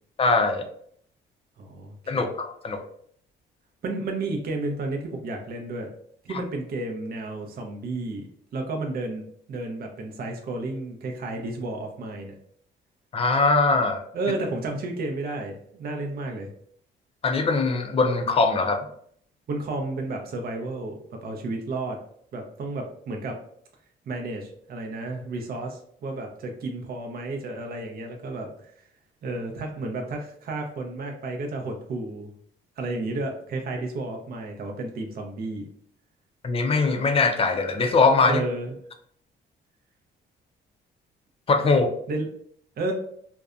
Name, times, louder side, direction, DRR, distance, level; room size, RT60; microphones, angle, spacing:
voice 1, 0.2-0.7 2.1-2.8 13.1-14.0 17.2-18.9 36.4-38.4 41.5-41.9, left 3 dB, 30° left, 6 dB, 0.4 m, -21 dB
voice 2, 1.6-2.2 3.8-5.9 6.2-12.4 14.1-16.5 19.5-22.0 22.3-23.4 24.1-28.7 29.2-32.3 32.8-35.7 38.2-38.8 42.1-42.3 42.8-42.9, right 2 dB, 50° right, 2 dB, 0.6 m, -32 dB
2.6 x 2.1 x 2.4 m, 0.64 s
cardioid pair, 90°, 20 cm